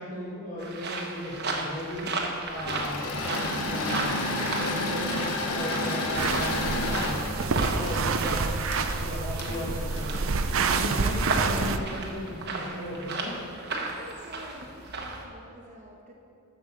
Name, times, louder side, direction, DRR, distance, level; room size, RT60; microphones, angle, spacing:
voice 1, 0.0-2.0 2.5-4.1 4.4-5.1 5.4-8.6 9.0-10.0 10.5-13.4, left 1 dB, 40° left, -11 dB, 2.9 m, -36 dB
sound 1, 0.6-15.3, right 3 dB, 50° right, 1.3 m, -35 dB
Engine / Mechanisms, 2.5-10.9, left 2 dB, 90° left, 1.2 m, -31 dB
sound 2, 6.2-11.8, right 4 dB, 65° right, 0.6 m, -28 dB
voice 2, 14.0-16.1, equal, 35° right, 0 dB, 1.0 m, -47 dB
11.0 x 6.9 x 7.4 m, 2.5 s
head